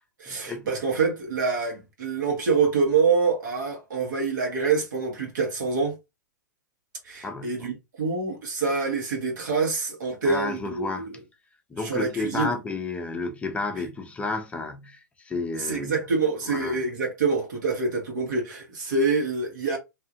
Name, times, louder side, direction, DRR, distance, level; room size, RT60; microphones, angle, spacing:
voice 1, 0.2-5.9 7.0-11.0 11.8-12.5 15.6-19.8, right 4 dB, 70° right, 1.4 m, -26 dB
voice 2, 7.2-7.7 10.2-11.1 11.7-16.0 16.5-16.8, left 3 dB, 10° left, 0.6 m, -31 dB
2.8 x 2.4 x 2.8 m
hypercardioid pair, 115°, 10 cm